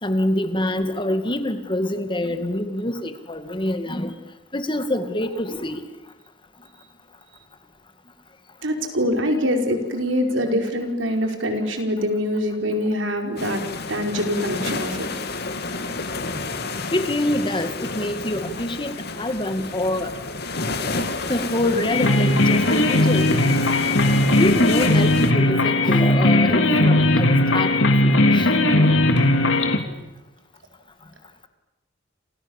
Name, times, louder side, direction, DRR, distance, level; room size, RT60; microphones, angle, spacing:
voice 1, 0.0-4.2 4.5-5.8 16.9-20.1 21.3-23.6 24.4-27.7 28.0-28.5, left 1 dB, 25° left, 9 dB, 2.1 m, -25 dB
voice 2, 8.6-13.6 13.9-15.1, equal, 80° right, 4 dB, 4.9 m, -24 dB
sound 1, 13.4-25.3, left 3 dB, 60° left, 2.5 m, -30 dB
sound 2, 21.9-29.8, left 1 dB, 85° left, 3.1 m, -18 dB
29.5 x 27.5 x 7.3 m, 1.0 s
head